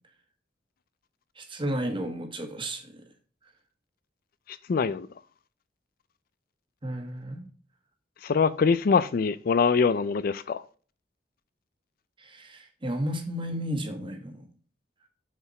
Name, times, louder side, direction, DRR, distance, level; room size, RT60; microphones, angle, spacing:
voice 1, 1.3-3.0 6.8-7.5 12.2-14.5, equal, 30° right, 1.4 m, -33 dB
voice 2, 4.5-5.1 8.2-10.6, left 5 dB, 55° left, 0.4 m, -24 dB
6.6 x 4.8 x 4.3 m
head